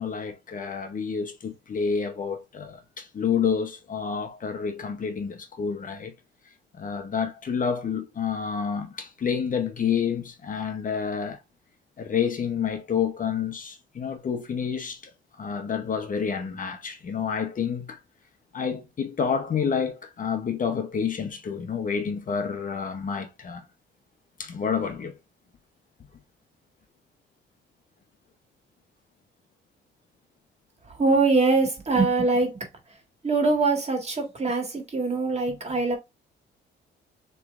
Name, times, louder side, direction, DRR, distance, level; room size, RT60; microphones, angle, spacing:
voice 1, 0.0-6.1 6.7-11.4 12.0-15.1 15.4-18.0 18.5-23.6 24.4-25.1, left 6 dB, 40° left, 0.9 m, -29 dB
voice 2, 30.9-32.7 33.2-36.0, right 3 dB, 35° right, 1.9 m, -23 dB
6.7 x 3.2 x 2.5 m
cardioid pair, 90°, 20 cm